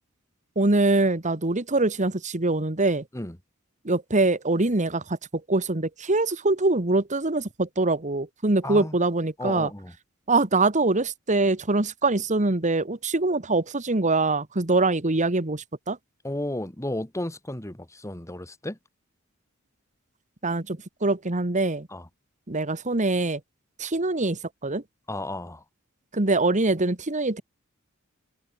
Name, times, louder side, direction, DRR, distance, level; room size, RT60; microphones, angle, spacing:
voice 1, 0.5-3.0 3.8-9.7 10.3-16.0 20.4-21.9 22.5-23.4 23.8-24.8 26.1-27.4, right 2 dB, 35° right, 1.6 m, -24 dB
voice 2, 8.6-8.9 9.4-9.9 16.2-18.8 21.9-22.1 25.1-25.6, left 1 dB, 15° left, 1.9 m, -33 dB
open air
head